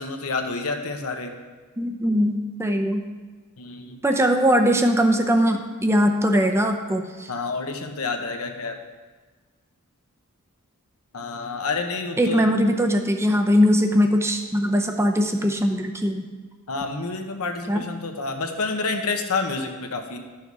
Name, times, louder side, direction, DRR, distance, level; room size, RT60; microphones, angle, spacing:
voice 1, 0.0-1.4 3.6-4.0 7.3-8.8 11.1-12.5 16.7-20.2, left 3 dB, 85° left, 4 dB, 1.1 m, -29 dB
voice 2, 1.8-3.1 4.0-7.3 12.2-16.3 17.7-17.8, equal, 10° right, 4 dB, 0.7 m, -21 dB
12.0 x 6.3 x 4.8 m, 1.4 s
head